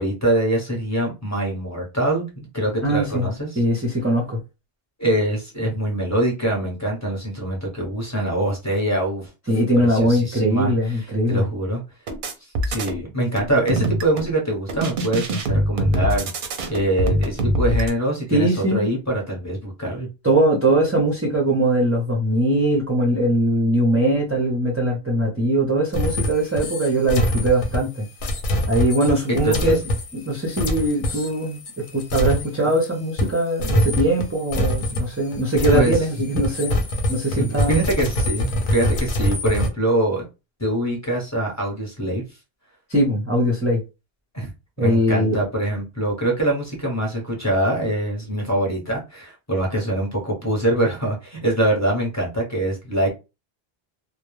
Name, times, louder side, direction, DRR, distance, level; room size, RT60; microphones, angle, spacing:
voice 1, 0.0-3.6 5.0-9.3 9.7-11.8 12.7-16.3 16.7-20.1 29.3-29.8 31.1-31.2 35.7-35.9 37.4-40.3 40.6-42.2 44.3-44.5 44.8-53.1, right 1 dB, 20° left, 0.8 m, -24 dB
voice 2, 2.8-3.3 3.6-4.4 9.5-11.5 18.3-18.9 20.2-28.0 28.7-29.8 30.1-36.8 37.1-37.8 42.9-43.8 44.8-45.4, right 1 dB, 20° right, 0.4 m, -21 dB
sound 1, 12.1-13.0 13.4-14.3 14.7-17.9, right 1 dB, 60° right, 0.6 m, -23 dB
sound 2, 25.9-32.9 33.2-39.7, equal, 55° left, 0.7 m, -25 dB
2.2 x 2.1 x 3.1 m
omnidirectional pair, 1.0 m